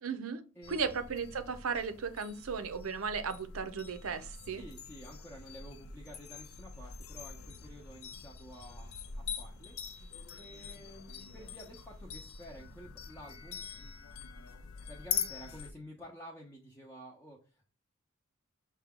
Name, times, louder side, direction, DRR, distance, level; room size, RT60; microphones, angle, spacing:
voice 1, 0.0-0.4 0.7-4.6, right 5 dB, 75° right, 0.6 m, -36 dB
voice 2, 0.5-0.9 4.3-10.1 10.3-14.0 14.3-17.7, equal, 10° left, 0.7 m, -51 dB
sound 1, 0.6-15.7, left 7 dB, 80° left, 0.5 m, -43 dB
5.8 x 2.3 x 3.6 m
head